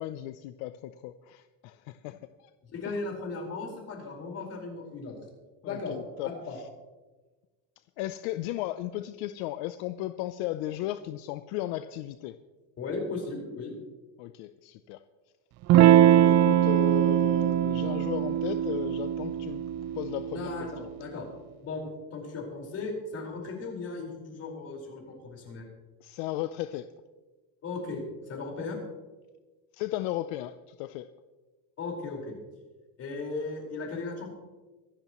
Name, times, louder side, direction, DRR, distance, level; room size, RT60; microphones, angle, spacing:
voice 1, 0.0-2.5 2.8-3.0 5.6-6.6 8.0-12.4 14.2-15.0 15.7-19.6 19.9-20.5 20.8-20.9 26.0-26.9 29.7-31.1, left 14 dB, 75° left, 11 dB, 0.7 m, -35 dB
voice 2, 2.7-5.1 5.6-5.9 6.2-6.6 12.8-13.7 20.3-21.2 21.6-25.6 27.6-28.8 31.8-32.3 33.0-34.3, left 3 dB, 35° left, -1 dB, 4.7 m, -36 dB
Electric guitar / Strum, 15.7-20.8, right 11 dB, 40° right, 0.5 m, -22 dB
24.5 x 11.0 x 3.1 m, 1.2 s
cardioid pair, 150°, 39 cm